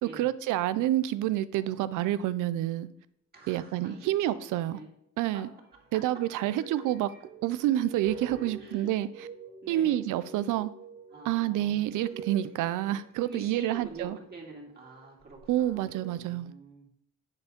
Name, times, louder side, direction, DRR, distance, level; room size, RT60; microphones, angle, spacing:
voice 1, 0.0-2.9 3.5-4.8 5.2-5.5 5.9-7.1 7.4-9.3 9.7-10.7 11.2-14.2 15.5-16.5, right 13 dB, 90° right, 15 dB, 0.5 m, -28 dB
sound 1, 1.6-2.4 4.1-4.9 5.7-16.2, right 4 dB, 50° right, 2.3 m, -48 dB
voice 2, 3.3-4.9 5.3-5.4 5.7-5.8 8.6-8.9 9.6-10.0 11.1-11.9 13.3-16.9, right 2 dB, 30° right, -2 dB, 2.9 m, -46 dB
9.5 x 4.6 x 5.1 m, 0.70 s
cardioid pair, 90°, 30 cm